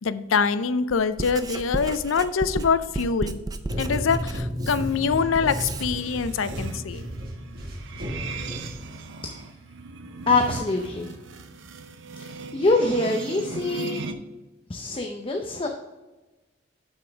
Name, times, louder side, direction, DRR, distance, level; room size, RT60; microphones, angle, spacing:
voice 1, 0.0-3.4 3.8-7.1, left 5 dB, 85° left, 13 dB, 0.5 m, -24 dB
Writing, 0.9-5.9, right 2 dB, 20° right, 0.4 m, -34 dB
sound 1, 3.6-9.2, equal, 50° right, 1.7 m, -33 dB
sound 2, 5.7-14.1, right 4 dB, 65° right, 0.6 m, -38 dB
voice 2, 10.3-11.1 12.5-14.0 14.7-15.7, left 2 dB, 25° left, 2 dB, 0.6 m, -24 dB
7.9 x 6.1 x 3.5 m, 1.1 s
head